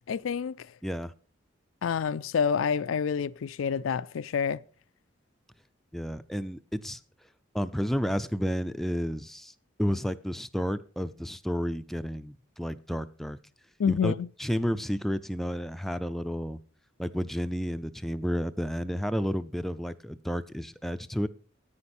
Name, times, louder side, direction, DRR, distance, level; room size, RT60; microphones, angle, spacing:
voice 1, 0.1-0.7 1.8-4.6 13.8-14.3, left 7 dB, 90° left, 0.4 m, -28 dB
voice 2, 0.8-1.1 5.9-7.0 7.5-9.5 9.8-13.4 13.9-14.1 14.4-16.6 17.0-21.3, equal, ahead, 0.4 m, -31 dB
9.7 x 9.1 x 4.2 m
head